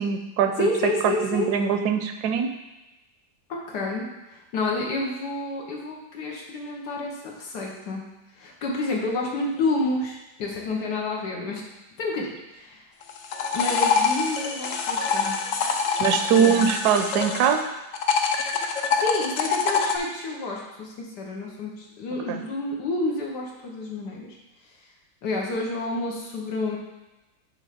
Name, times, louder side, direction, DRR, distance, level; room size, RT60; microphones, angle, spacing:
voice 1, 0.0-0.7 1.0-2.5 16.0-17.6 22.3-22.4, right 7 dB, 75° right, 6 dB, 1.1 m, -22 dB
voice 2, 0.6-1.5 3.5-4.1 4.3-8.1 8.3-11.6 12.0-12.9 13.5-15.4 16.3-16.8 18.9-24.4 25.2-26.8, left 2 dB, 85° left, -1 dB, 1.7 m, -29 dB
sound 1, 13.0-17.6 17.9-20.0, left 5 dB, 60° left, 0.9 m, -25 dB
8.9 x 3.3 x 5.0 m, 1.0 s
omnidirectional pair, 1.8 m